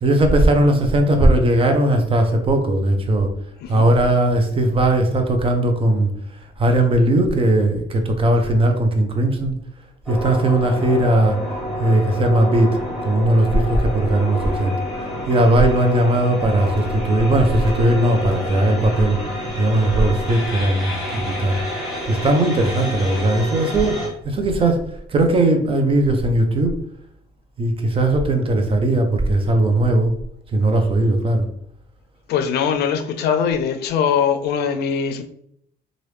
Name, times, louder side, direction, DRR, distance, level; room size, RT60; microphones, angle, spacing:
voice 1, 0.0-3.3 3.7-6.1 6.6-9.5 10.1-11.4 11.8-12.8 13.0-14.8 15.3-19.2 19.6-21.6 22.1-24.0 24.2-24.8 25.1-26.8 27.6-30.1 30.5-31.5, right 1 dB, 35° right, 5 dB, 0.7 m, -18 dB
sound 1, 10.1-24.1, equal, ahead, 1.1 m, -28 dB
voice 2, 32.3-35.2, left 7 dB, 75° left, 8 dB, 0.5 m, -21 dB
3.0 x 2.5 x 3.2 m, 0.70 s
cardioid pair, 110°, 17 cm